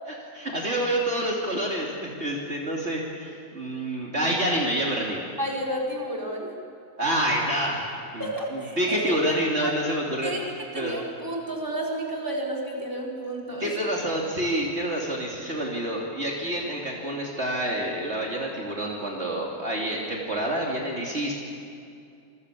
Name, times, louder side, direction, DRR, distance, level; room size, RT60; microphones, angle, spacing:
voice 1, 0.3-5.2 7.0-7.9 8.1-10.3 10.7-11.1 13.6-21.3, right 1 dB, 45° right, -2 dB, 3.4 m, -28 dB
voice 2, 5.4-6.5 8.2-9.4 9.6-9.7 10.2-10.4 10.7-13.7, right 1 dB, 15° right, -2 dB, 4.3 m, -31 dB
27.5 x 22.0 x 8.5 m, 2.4 s
omnidirectional pair, 1.5 m